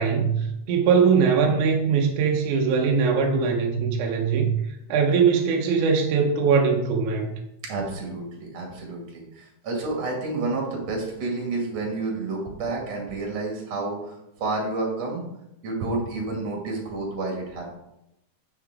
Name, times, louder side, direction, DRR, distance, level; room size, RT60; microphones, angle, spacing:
voice 1, 0.0-4.5 4.9-7.3, right 5 dB, 70° right, 1 dB, 2.2 m, -21 dB
voice 2, 7.6-15.2 15.6-17.7, right 3 dB, 50° right, 0 dB, 3.0 m, -30 dB
9.2 x 6.9 x 3.6 m, 0.84 s
omnidirectional pair, 4.0 m